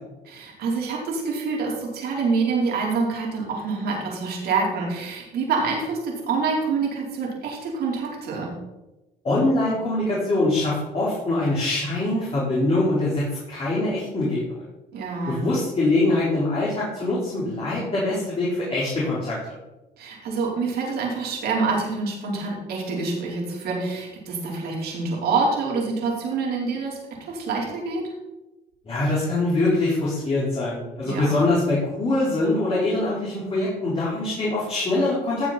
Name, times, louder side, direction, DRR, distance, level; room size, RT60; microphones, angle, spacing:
voice 1, 0.3-8.5 14.9-15.5 20.0-28.0 31.0-31.5, right 4 dB, 70° right, -2 dB, 4.4 m, -26 dB
voice 2, 9.2-14.6 15.3-19.5 28.9-35.5, left 2 dB, 35° left, -7 dB, 4.6 m, -23 dB
16.5 x 7.3 x 4.4 m, 1.0 s
cardioid pair, 110°, 17 cm